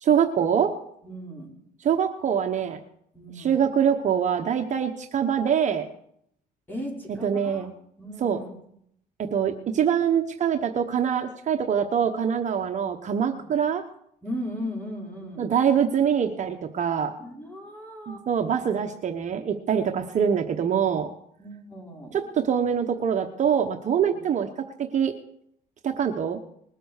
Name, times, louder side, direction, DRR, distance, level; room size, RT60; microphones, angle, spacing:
voice 1, 0.0-0.7 1.8-2.8 3.4-5.9 7.2-7.7 8.2-8.4 9.2-13.8 15.4-17.1 18.1-21.1 22.1-24.5 24.9-25.1 25.8-26.4, right 8 dB, 45° right, 4 dB, 1.1 m, -24 dB
voice 2, 1.0-1.5 3.1-3.6 6.7-7.7 8.0-8.5 14.2-15.5 17.2-18.3 21.4-22.2, equal, 10° left, -2 dB, 5.7 m, -37 dB
20.5 x 7.9 x 6.6 m, 0.71 s
cardioid pair, 110°, 17 cm